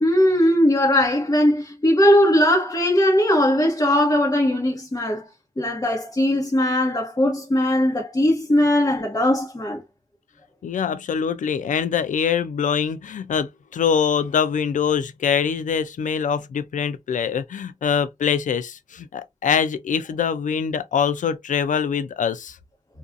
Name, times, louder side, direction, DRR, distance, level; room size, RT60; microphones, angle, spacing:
voice 1, 0.0-5.2 5.6-9.8, left 1 dB, 30° left, 1.0 m, -19 dB
voice 2, 10.6-22.6, left 7 dB, 85° left, 0.4 m, -24 dB
2.5 x 2.3 x 2.5 m
cardioid pair, 50°, 13 cm